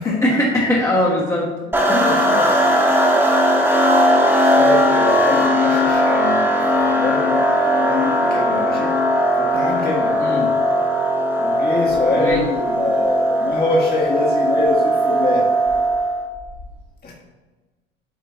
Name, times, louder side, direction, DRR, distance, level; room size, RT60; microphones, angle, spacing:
voice 1, 0.0-1.5 1.9-2.1 10.2-10.5 12.2-12.4, left 1 dB, 10° left, -5 dB, 1.5 m, -20 dB
sound 1, 1.7-16.3, equal, 5° right, 1.6 m, -18 dB
voice 2, 2.0-2.7 4.5-8.9 9.4-10.2 11.4-15.5 17.0-17.1, left 3 dB, 30° left, -4 dB, 1.8 m, -24 dB
8.4 x 4.5 x 2.8 m, 1.2 s
hypercardioid pair, 65°, 30 cm